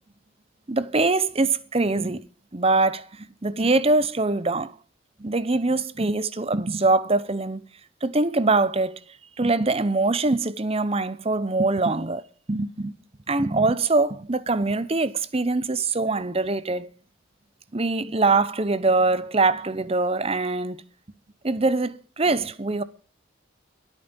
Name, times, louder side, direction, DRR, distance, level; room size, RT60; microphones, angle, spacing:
voice 1, 0.7-2.2 2.5-4.7 5.2-7.6 8.0-9.0 9.4-12.9 13.3-16.9 17.7-20.8 21.4-22.8, right 3 dB, 30° right, 0.8 m, -23 dB
22.5 x 9.1 x 5.4 m
head